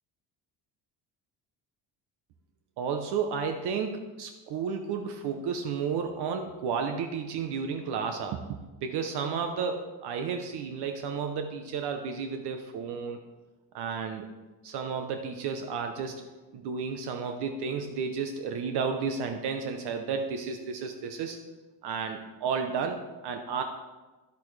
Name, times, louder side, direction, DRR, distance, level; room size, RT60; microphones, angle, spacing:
voice 1, 2.8-8.5 8.8-13.2 13.7-14.3 14.6-16.2 16.5-21.4 21.8-23.6, right 6 dB, 70° right, 6 dB, 0.9 m, -32 dB
10.5 x 8.5 x 3.3 m, 1.2 s
cardioid pair, 135°, 41 cm